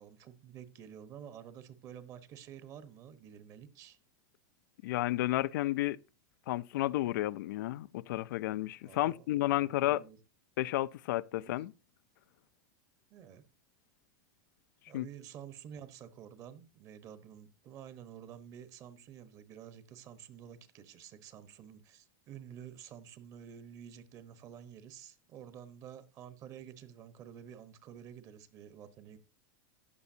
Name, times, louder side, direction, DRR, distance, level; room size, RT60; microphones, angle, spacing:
voice 1, 0.0-4.0 8.8-9.2 9.6-10.2 11.3-11.6 13.1-13.4 14.9-29.2, right 9 dB, 30° right, 1.1 m, -50 dB
voice 2, 4.8-6.0 6.5-10.0 10.6-11.7 14.9-15.1, left 16 dB, 70° left, 0.5 m, -32 dB
13.5 x 9.6 x 2.8 m
supercardioid pair, 165°, 10 cm